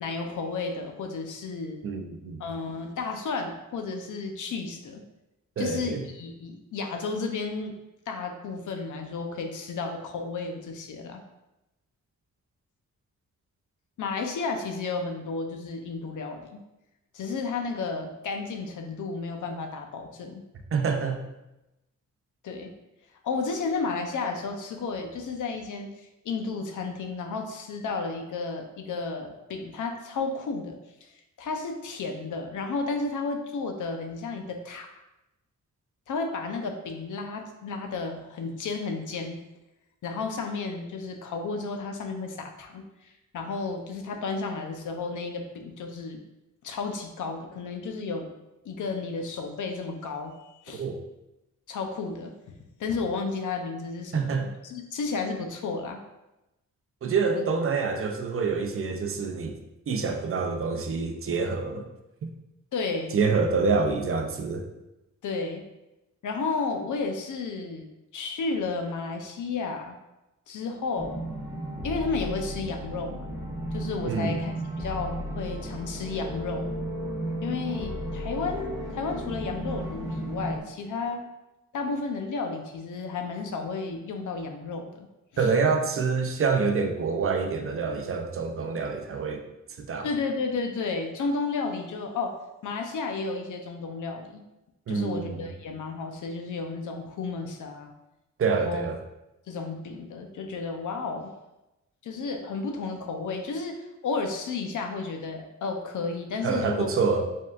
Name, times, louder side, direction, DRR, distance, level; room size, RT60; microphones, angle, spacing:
voice 1, 0.0-1.8 2.4-5.0 5.6-7.7 8.1-11.2 14.0-16.6 17.1-20.4 22.4-22.7 23.2-31.1 31.4-34.9 36.1-39.4 40.0-46.2 46.6-48.3 48.6-50.9 51.7-52.3 52.8-56.0 57.3-57.5 62.7-63.2 65.2-65.6 66.2-67.9 68.1-70.0 70.5-71.2 71.8-73.3 73.7-76.7 77.4-81.2 81.7-85.1 85.3-85.5 90.0-92.4 92.6-94.4 94.9-97.9 98.5-98.8 99.5-101.3 102.0-106.9, left 4 dB, 75° left, 5 dB, 0.6 m, -32 dB
voice 2, 1.8-2.4 5.6-6.0 20.7-21.2 50.8-51.0 54.1-54.5 57.0-59.6 59.9-61.8 62.2-62.3 63.1-64.6 74.1-74.4 85.4-89.4 89.8-90.1 94.9-95.5 98.4-99.0 106.4-107.3, right 4 dB, 45° right, 4 dB, 0.5 m, -26 dB
sound 1, 71.0-80.6, right 1 dB, 10° right, 1.1 m, -34 dB
5.0 x 3.6 x 2.4 m, 0.95 s
wide cardioid pair, 145°, 31 cm